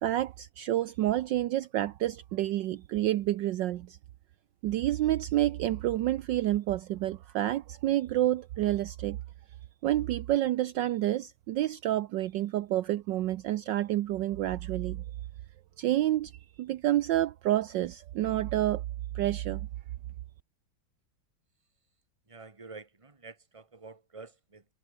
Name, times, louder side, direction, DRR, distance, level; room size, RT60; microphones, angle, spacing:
voice 1, 0.0-4.0 4.6-9.2 9.8-15.0 15.8-16.3 16.6-18.8 19.1-19.7, right 14 dB, 70° right, 1.3 m, -29 dB
voice 2, 22.3-24.7, right 4 dB, 15° right, 1.9 m, -48 dB
omnidirectional pair, 2.2 m